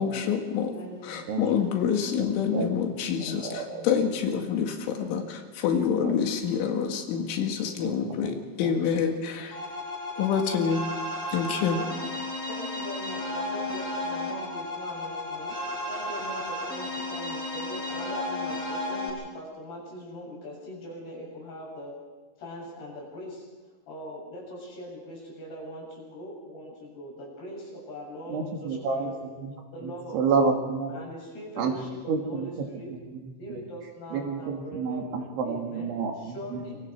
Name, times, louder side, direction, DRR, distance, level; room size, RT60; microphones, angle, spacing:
voice 1, 0.0-0.7 1.0-9.5 10.2-10.8 11.3-11.8, left 7 dB, 85° left, 3 dB, 4.4 m, -27 dB
voice 2, 0.7-1.3 3.7-4.0 7.6-7.8 9.1-9.6 11.8-12.1 12.5-15.6 15.9-22.0 22.4-23.5 23.9-29.1 29.7-30.5 30.9-32.9 33.4-36.8, equal, 60° left, -2 dB, 9.2 m, -41 dB
voice 3, 3.4-3.8 5.8-6.1 7.8-8.3 8.6-8.8 28.3-29.5 29.8-30.9 31.6-36.8, right 5 dB, 75° right, 2 dB, 4.8 m, -30 dB
sound 1, 9.5-19.1, left 1 dB, 15° left, 7.0 m, -33 dB
26.5 x 23.5 x 4.8 m, 1.4 s
omnidirectional pair, 5.4 m